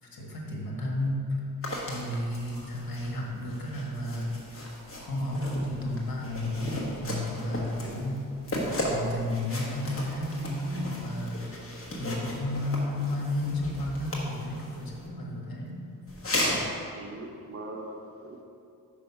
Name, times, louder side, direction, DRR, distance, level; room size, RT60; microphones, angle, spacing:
voice 1, 0.0-1.4 1.9-4.3 5.0-8.2 8.9-11.4 12.0-15.8, left 1 dB, 80° left, -2 dB, 1.4 m, -32 dB
sound 1, 1.6-15.1 16.1-16.7, left 1 dB, 40° left, 1.2 m, -36 dB
voice 2, 16.9-18.4, right 1 dB, 40° right, 2 dB, 0.7 m, -41 dB
5.5 x 5.0 x 5.6 m, 2.5 s
wide cardioid pair, 140°, 35 cm